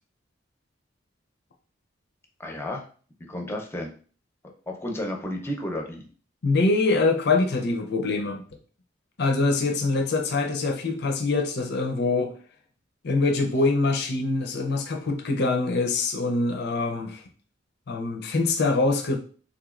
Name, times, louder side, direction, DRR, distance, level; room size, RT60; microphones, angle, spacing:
voice 1, 2.4-2.8 3.3-3.9 4.7-6.0, left 1 dB, 15° left, 1 dB, 0.6 m, -32 dB
voice 2, 6.4-8.4 9.2-12.3 13.0-17.2 17.9-19.2, left 3 dB, 60° left, 3 dB, 0.5 m, -24 dB
3.6 x 3.0 x 2.4 m, 0.41 s
head